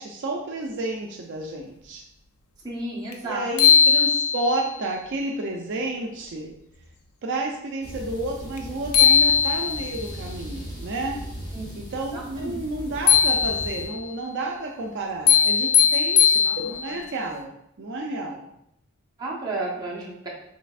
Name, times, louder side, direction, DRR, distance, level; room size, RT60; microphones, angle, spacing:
voice 1, 0.0-2.0 3.2-6.5 7.2-11.2 11.8-18.5, right 2 dB, 55° right, 0 dB, 0.5 m, -31 dB
voice 2, 2.6-3.5 11.5-11.7 12.1-12.5 19.2-20.3, right 2 dB, 20° right, -5 dB, 1.1 m, -32 dB
sound 1, 3.1-3.2 3.6-4.7 8.6-8.7 8.9-10.0 13.1-14.0 15.3-17.0, left 7 dB, 80° left, 0.6 m, -19 dB
sound 2, 7.8-13.9, equal, 20° left, 1.5 m, -38 dB
6.1 x 3.4 x 2.4 m, 0.77 s
head